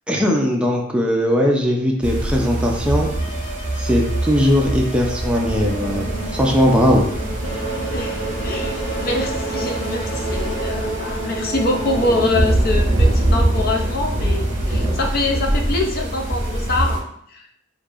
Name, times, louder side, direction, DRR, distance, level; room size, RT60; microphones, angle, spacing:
voice 1, 0.1-3.1 3.8-7.1, equal, 5° right, -1 dB, 0.6 m, -19 dB
sound 1, 2.0-17.0, right 1 dB, 40° right, 1.3 m, -23 dB
sound 2, 3.0-7.5, equal, 25° left, 1.3 m, -37 dB
sound 3, 5.4-12.3, right 2 dB, 80° left, 1.3 m, -28 dB
voice 2, 7.9-17.0 17.3-17.5, left 2 dB, 50° left, 2 dB, 0.6 m, -24 dB
6.4 x 2.7 x 2.5 m, 0.68 s
head